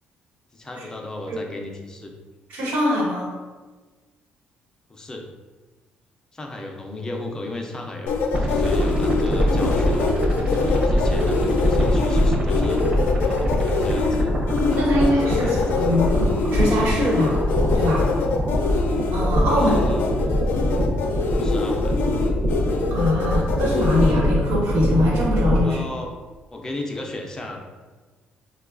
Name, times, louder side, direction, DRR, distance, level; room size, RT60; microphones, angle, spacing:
voice 1, 0.5-2.1 4.9-5.3 6.3-10.1 10.5-12.8 13.1-14.3 14.8-15.8 19.5-20.0 21.4-22.0 25.6-26.1 26.5-27.6, left 2 dB, 20° left, 2 dB, 0.4 m, -35 dB
voice 2, 2.5-3.3 14.7-17.5 17.7-18.1 19.1-19.9 22.9-25.9, left 1 dB, 75° right, -4 dB, 1.2 m, -23 dB
sound 1, 8.1-24.1, left 4 dB, 80° left, 0.4 m, -25 dB
sound 2, 8.3-25.6, equal, 30° right, 0.8 m, -23 dB
4.6 x 2.2 x 2.4 m, 1.3 s
cardioid pair, 130°, 4 cm